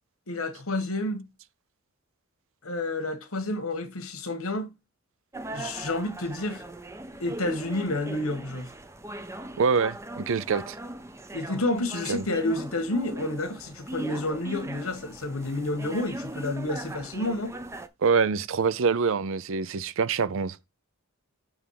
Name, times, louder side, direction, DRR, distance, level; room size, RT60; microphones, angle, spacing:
voice 1, 0.3-1.2 2.6-4.7 5.5-6.6 7.2-8.7 11.3-17.5, left 2 dB, 90° left, 1.4 m, -30 dB
sound 1, 5.3-17.9, right 1 dB, 15° right, 0.5 m, -39 dB
voice 2, 9.6-10.8 12.1-12.2 18.0-20.7, right 5 dB, 65° right, 0.5 m, -25 dB
7.1 x 3.5 x 5.6 m
head